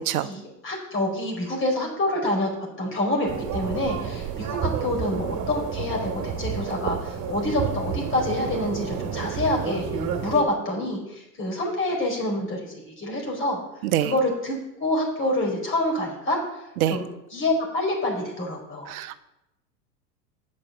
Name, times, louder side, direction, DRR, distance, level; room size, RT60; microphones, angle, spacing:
voice 1, 0.2-2.5 2.8-9.9 10.2-13.6 14.0-16.4 16.9-18.9, left 1 dB, 25° left, 0 dB, 4.6 m, -27 dB
sound 1, 3.3-10.4, right 7 dB, 35° right, 2.4 m, -30 dB
voice 2, 18.9-19.2, right 12 dB, 60° right, 11 dB, 0.7 m, -24 dB
8.8 x 6.4 x 7.8 m, 0.89 s
hypercardioid pair, 100°, 49 cm